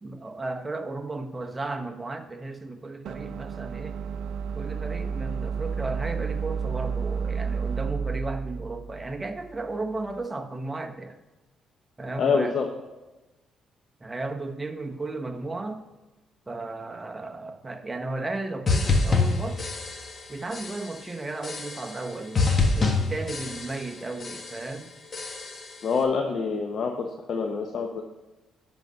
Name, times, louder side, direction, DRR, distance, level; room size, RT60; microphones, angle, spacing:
voice 1, 0.0-4.0 4.5-11.2 12.0-12.6 14.0-15.8 16.5-19.8 20.3-24.9, right 2 dB, 20° right, 0.9 m, -34 dB
sound 1, 3.1-10.1, right 6 dB, 80° right, 0.4 m, -32 dB
voice 2, 12.2-12.7 25.8-28.0, left 5 dB, 55° left, 0.9 m, -26 dB
sound 2, 18.7-20.2 20.5-21.0 21.4-22.1 22.3-23.9 24.2-24.7 25.1-25.8, left 3 dB, 40° left, 1.4 m, -26 dB
11.5 x 4.0 x 6.6 m
cardioid pair, 90°, 0 cm